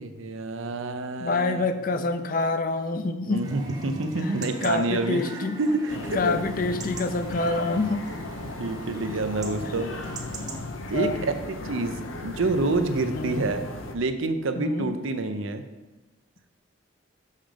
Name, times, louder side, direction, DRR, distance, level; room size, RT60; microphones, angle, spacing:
voice 1, 0.0-1.6 3.3-6.3 8.4-9.9 10.9-11.3 11.6-13.6 13.9-15.6, right 2 dB, 80° right, 8 dB, 0.7 m, -28 dB
voice 2, 1.2-3.4 4.2-4.3 4.6-5.6 6.1-8.0 10.9-11.2 13.1-13.5 14.6-14.9, left 3 dB, 45° left, 9 dB, 0.5 m, -27 dB
Chatter / Livestock farm animals working animals / Chirp tweet, 3.4-10.6, right 2 dB, 20° right, 0.7 m, -41 dB
sound 1, 5.9-14.0, left 2 dB, 85° left, 0.8 m, -36 dB
6.3 x 5.6 x 5.1 m, 1.2 s
head